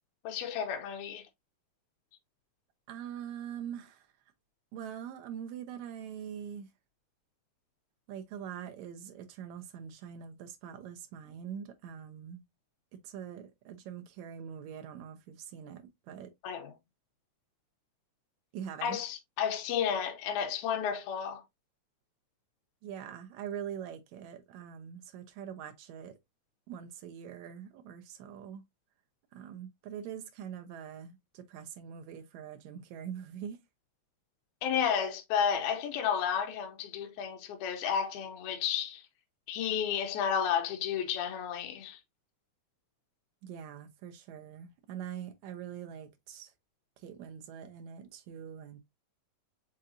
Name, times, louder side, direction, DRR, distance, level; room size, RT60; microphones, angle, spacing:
voice 1, 0.2-1.3 16.4-16.7 18.8-21.4 34.6-39.1 39.5-42.0, left 8 dB, 90° left, 2.1 m, -32 dB
voice 2, 2.9-4.1 4.7-6.7 8.1-12.4 13.0-16.3 18.5-19.0 22.8-26.1 26.7-28.6 29.3-33.6 43.4-46.5 47.0-48.8, right 8 dB, 75° right, 1.9 m, -43 dB
5.4 x 3.8 x 2.5 m
omnidirectional pair, 3.4 m